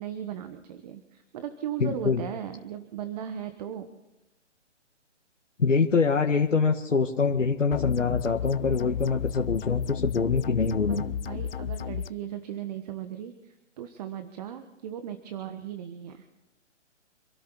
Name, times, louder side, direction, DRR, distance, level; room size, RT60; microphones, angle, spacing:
voice 1, 0.0-3.9 10.9-16.4, right 9 dB, 35° right, 8 dB, 1.4 m, -37 dB
voice 2, 1.8-2.2 5.6-11.1, left 5 dB, 80° left, 2 dB, 1.7 m, -24 dB
sound 1, 7.7-12.1, left 8 dB, 50° left, 0.7 m, -33 dB
27.5 x 13.0 x 4.0 m, 0.96 s
figure-of-eight pair, 140°, 36 cm